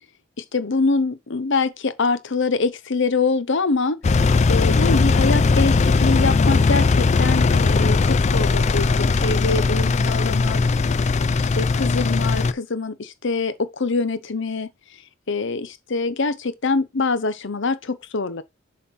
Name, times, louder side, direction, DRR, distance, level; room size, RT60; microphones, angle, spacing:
voice 1, 0.5-4.0 4.5-10.6 11.4-14.7 15.3-18.4, left 3 dB, 60° left, 0.8 m, -24 dB
Engine, 4.0-12.5, left 4 dB, 35° left, 0.4 m, -19 dB
7.5 x 4.3 x 5.7 m
head